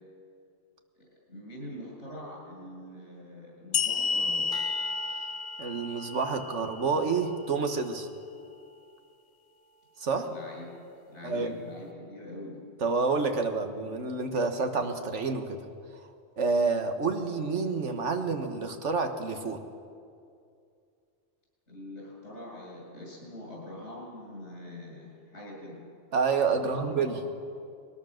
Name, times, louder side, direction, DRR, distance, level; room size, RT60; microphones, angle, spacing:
voice 1, 1.3-4.6 10.3-10.7 11.1-12.6 21.7-25.8 26.6-27.3, left 1 dB, 75° left, -3 dB, 7.8 m, -43 dB
sound 1, 3.7-7.1, left 5 dB, 50° left, 0.6 m, -31 dB
sound 2, 4.5-9.0 9.5-9.9, right 2 dB, 5° left, 1.3 m, -47 dB
voice 2, 5.6-8.1 10.0-10.3 11.2-11.5 12.8-15.6 16.4-19.6 26.1-27.2, right 4 dB, 85° right, 6 dB, 1.7 m, -28 dB
21.0 x 19.0 x 6.5 m, 2.4 s
omnidirectional pair, 1.2 m